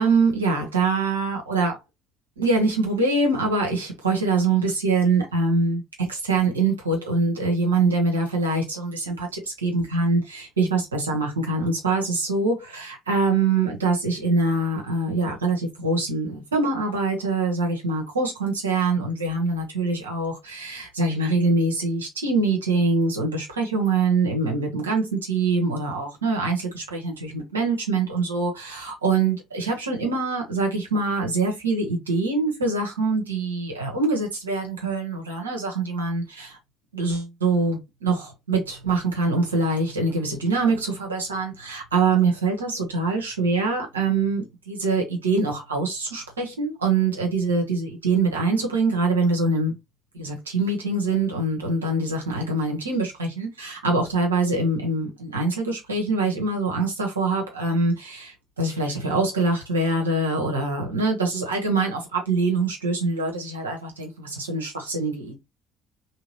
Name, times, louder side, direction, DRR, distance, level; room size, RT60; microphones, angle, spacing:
voice 1, 0.0-1.8 2.4-36.6 36.9-49.7 50.1-65.4, right 3 dB, 90° right, 1.1 m, -24 dB
3.2 x 2.9 x 3.0 m
figure-of-eight pair, 50°, 0 cm